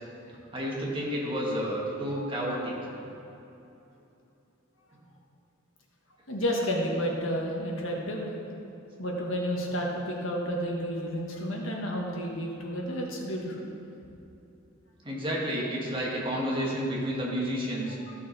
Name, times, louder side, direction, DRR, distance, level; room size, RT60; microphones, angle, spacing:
voice 1, 0.5-2.7 15.0-18.0, equal, 25° right, -4 dB, 1.8 m, -30 dB
voice 2, 6.3-8.3 9.0-13.7 17.9-18.1, equal, 75° left, -1 dB, 1.5 m, -31 dB
14.0 x 6.2 x 4.2 m, 2.9 s
head